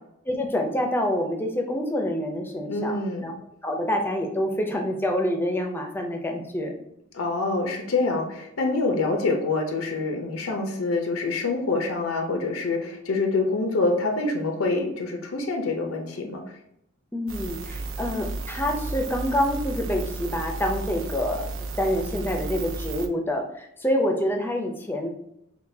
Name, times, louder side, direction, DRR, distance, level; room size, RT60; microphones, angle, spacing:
voice 1, 0.3-3.3 3.6-6.7 17.1-25.1, left 1 dB, 10° left, 2 dB, 0.5 m, -27 dB
voice 2, 2.7-3.3 7.1-16.4, left 3 dB, 90° left, 3 dB, 0.6 m, -26 dB
sound 1, 17.3-23.1, right 3 dB, 70° right, 0.4 m, -33 dB
5.9 x 2.3 x 2.7 m, 0.79 s
head